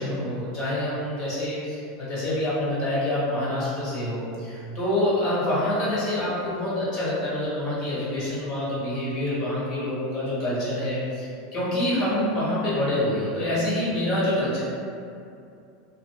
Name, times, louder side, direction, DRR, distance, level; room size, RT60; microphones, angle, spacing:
voice 1, 0.0-14.6, left 1 dB, 45° left, -9 dB, 1.2 m, -26 dB
2.4 x 2.4 x 2.7 m, 2.5 s
supercardioid pair, 140°, 0 cm